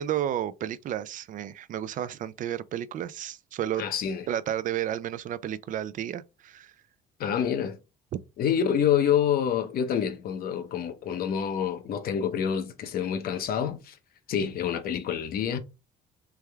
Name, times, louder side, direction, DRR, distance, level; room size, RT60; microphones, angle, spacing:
voice 1, 0.0-3.8 4.3-6.7, right 11 dB, 50° right, 0.4 m, -32 dB
voice 2, 3.8-4.2 7.2-7.8 8.4-14.0 14.3-15.6, left 8 dB, 60° left, 0.8 m, -27 dB
3.4 x 3.3 x 3.4 m
cardioid pair, 110°, 17 cm